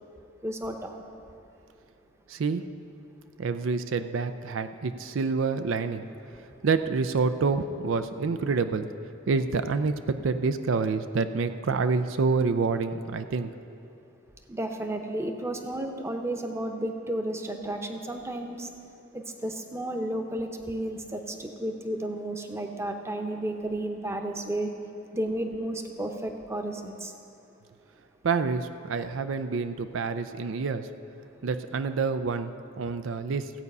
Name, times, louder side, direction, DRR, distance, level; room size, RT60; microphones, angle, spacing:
voice 1, 0.4-0.9 14.5-18.7 19.1-24.7 25.1-27.1, right 1 dB, 15° right, 4 dB, 0.8 m, -32 dB
voice 2, 2.3-2.6 3.4-6.1 6.6-8.9 9.3-13.5 28.2-30.9 31.4-32.5 32.8-33.5, right 4 dB, 85° right, 10 dB, 0.5 m, -27 dB
15.0 x 8.2 x 5.4 m, 2.7 s
head